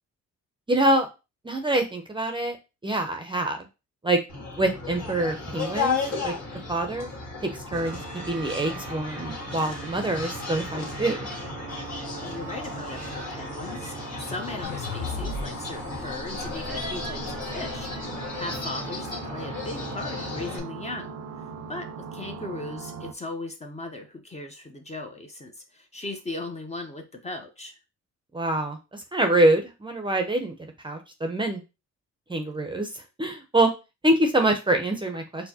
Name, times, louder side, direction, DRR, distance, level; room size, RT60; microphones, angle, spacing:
voice 1, 0.7-1.1 1.4-2.6 2.8-3.7 4.0-4.2 4.6-6.3 6.7-7.1 7.4-8.0 8.3-11.3 28.3-31.6 32.3-33.7 34.0-35.5, right 1 dB, 15° right, 4 dB, 0.6 m, -25 dB
sound 1, 4.3-20.6, left 4 dB, 60° left, 1.7 m, -34 dB
sound 2, 7.7-23.1, right 6 dB, 60° right, 0.6 m, -40 dB
voice 2, 12.1-21.2 21.7-27.7, left 2 dB, 20° left, 4 dB, 0.7 m, -38 dB
sound 3, 14.6-17.9, left 3 dB, 90° left, 0.7 m, -37 dB
4.4 x 2.1 x 2.8 m, 0.28 s
cardioid pair, 90°, 30 cm